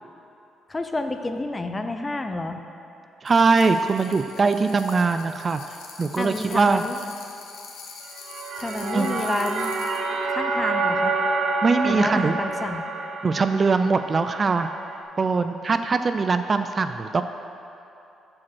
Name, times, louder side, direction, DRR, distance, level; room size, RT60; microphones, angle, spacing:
voice 1, 0.7-2.6 6.2-7.0 8.6-9.7 10.3-11.2 11.8-12.8, left 2 dB, 20° left, 6 dB, 0.5 m, -29 dB
voice 2, 3.2-5.6 6.0-6.9 8.9-9.2 11.6-12.4 13.2-14.7 15.2-17.2, right 4 dB, 35° right, 9 dB, 0.3 m, -22 dB
sound 1, 3.3-10.0, left 5 dB, 90° left, 1.0 m, -43 dB
sound 2, 8.1-15.0, right 3 dB, 65° right, 0.7 m, -28 dB
7.3 x 5.0 x 6.1 m, 2.8 s
cardioid pair, 90°, 0 cm